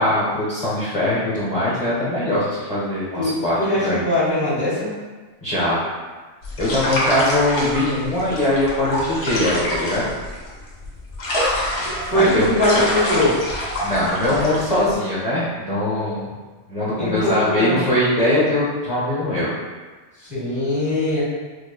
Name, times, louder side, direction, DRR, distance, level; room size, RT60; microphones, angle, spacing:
voice 1, 0.0-3.6 3.8-4.0 5.4-5.8 6.6-10.1 12.1-12.5 13.8-16.2 16.7-19.5, left 1 dB, 35° left, -9 dB, 0.8 m, -21 dB
voice 2, 3.2-4.9 12.0-13.4 17.0-17.8 20.2-21.2, left 1 dB, 10° right, -8 dB, 0.8 m, -21 dB
sound 1, 6.4-14.9, equal, 90° left, 1.2 m, -26 dB
4.8 x 2.3 x 2.2 m, 1.3 s
omnidirectional pair, 1.2 m